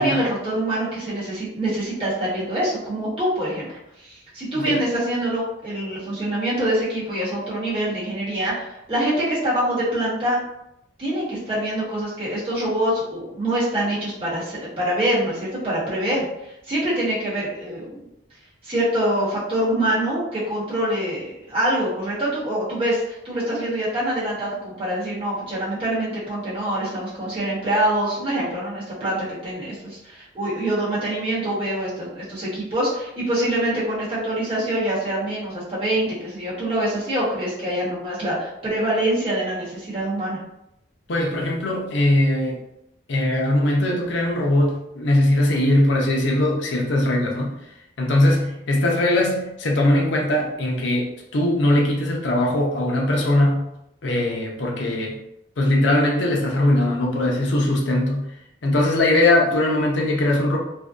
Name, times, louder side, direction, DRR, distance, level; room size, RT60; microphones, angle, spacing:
voice 1, 0.0-3.8 4.0-10.4 11.0-18.1 18.6-40.4, right 1 dB, 30° right, -9 dB, 1.0 m, -25 dB
voice 2, 41.1-42.6 43.1-47.5 48.0-53.7 54.0-55.2 55.6-58.3 58.6-60.6, left 1 dB, 80° left, -1 dB, 0.5 m, -20 dB
2.6 x 2.1 x 2.3 m, 0.83 s
head